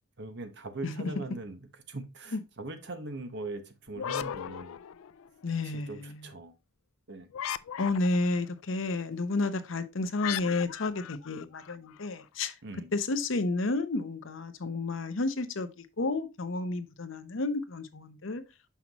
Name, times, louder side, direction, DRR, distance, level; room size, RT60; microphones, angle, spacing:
voice 1, 0.2-4.8 5.7-6.5 7.1-7.3 12.6-12.9, right 2 dB, 55° right, 1.1 m, -41 dB
voice 2, 0.8-1.2 2.3-2.4 5.4-6.2 7.8-12.5 12.9-18.4, left 3 dB, 65° left, 0.8 m, -31 dB
sound 1, 3.9-5.5 7.3-8.4 10.2-12.1, left 9 dB, 80° left, 0.4 m, -37 dB
6.0 x 5.7 x 2.9 m
head